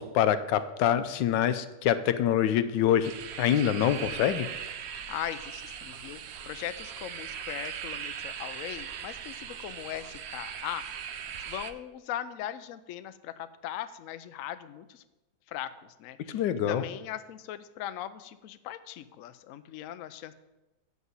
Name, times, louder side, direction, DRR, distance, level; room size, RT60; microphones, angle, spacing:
voice 1, 0.0-4.5 16.3-16.8, left 10 dB, 85° left, 12 dB, 1.3 m, -25 dB
sound 1, 3.0-11.7, right 8 dB, 90° right, 0.5 m, -39 dB
voice 2, 5.1-11.0 11.4-15.0 15.5-20.3, left 11 dB, 70° left, 12 dB, 0.8 m, -39 dB
8.2 x 6.1 x 8.0 m, 1.0 s
omnidirectional pair, 1.9 m